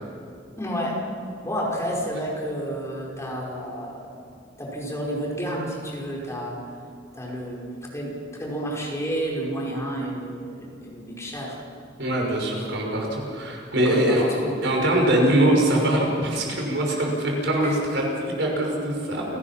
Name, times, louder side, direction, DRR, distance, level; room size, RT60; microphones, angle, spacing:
voice 1, 0.6-1.0 1.4-4.1 4.6-6.6 7.1-7.6 7.9-11.6 12.5-12.6 13.8-14.6 16.9-17.0 17.6-17.8, equal, 15° left, -3 dB, 5.2 m, -30 dB
voice 2, 12.0-14.3 14.6-19.4, right 1 dB, 65° right, 0 dB, 6.0 m, -23 dB
29.5 x 19.0 x 5.9 m, 2.5 s
head